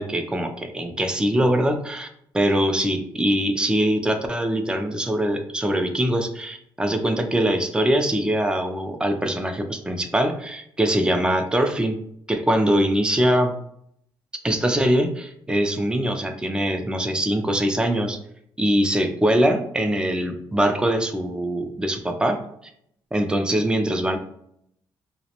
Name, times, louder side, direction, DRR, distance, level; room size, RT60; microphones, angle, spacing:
voice 1, 0.0-2.1 2.3-12.0 12.3-13.6 14.4-18.2 18.6-22.4 23.1-24.2, right 1 dB, 10° right, 5 dB, 0.3 m, -22 dB
2.4 x 2.0 x 2.8 m, 0.70 s
cardioid pair, 125°, 9 cm